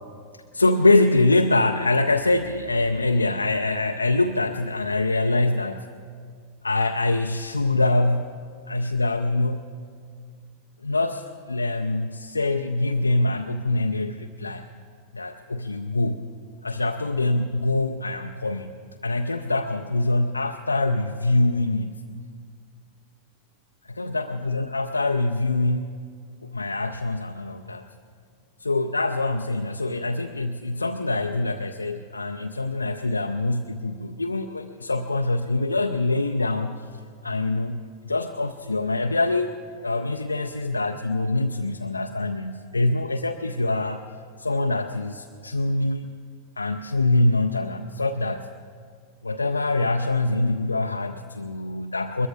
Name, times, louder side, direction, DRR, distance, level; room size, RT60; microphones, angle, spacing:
voice 1, 0.5-5.9 6.6-9.6 10.8-14.6 15.1-16.3 16.6-18.7 19.0-22.0 23.9-25.9 26.5-27.8 28.6-36.8 37.2-39.5 39.8-44.0 44.4-46.1 46.6-48.5 49.2-52.3, left 2 dB, 80° left, 5 dB, 0.5 m, -24 dB
22.0 x 22.0 x 2.5 m, 2.1 s
figure-of-eight pair, 90°, 0 cm